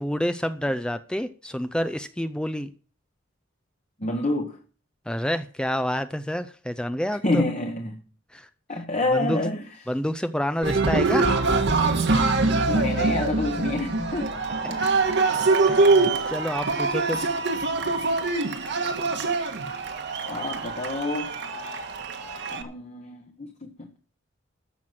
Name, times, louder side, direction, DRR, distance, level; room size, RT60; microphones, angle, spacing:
voice 1, 0.0-2.7 5.1-7.4 8.3-8.5 9.1-9.4 9.9-11.5 15.7-17.2, equal, 5° left, 0.5 m, -28 dB
voice 2, 4.0-4.6 7.2-8.0 8.7-9.7 12.7-15.2 20.3-21.3 22.5-24.0, left 2 dB, 35° left, 1.2 m, -28 dB
Cheering, 10.6-22.6, right 3 dB, 60° right, 1.7 m, -24 dB
13.5 x 6.1 x 7.6 m
head